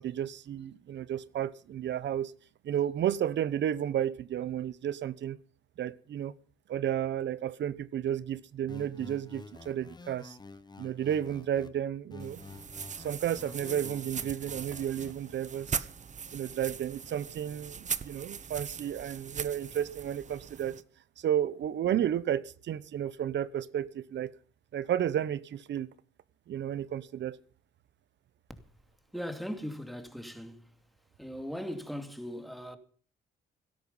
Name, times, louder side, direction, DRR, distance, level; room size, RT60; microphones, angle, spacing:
voice 1, 0.0-2.3 2.6-5.4 5.8-6.3 6.7-10.4 10.8-12.4 13.0-15.9 16.3-20.8 21.2-24.3 24.7-25.9 26.5-27.4, right 10 dB, 65° right, 1.0 m, -32 dB
sound 1, 8.7-11.7 12.1-15.1, left 3 dB, 20° left, 1.2 m, -49 dB
sound 2, 12.2-20.8, right 6 dB, 40° right, 1.1 m, -40 dB
voice 2, 29.1-30.6 31.2-32.8, equal, ahead, 2.5 m, -39 dB
17.5 x 13.0 x 5.5 m
cardioid pair, 90°, 20 cm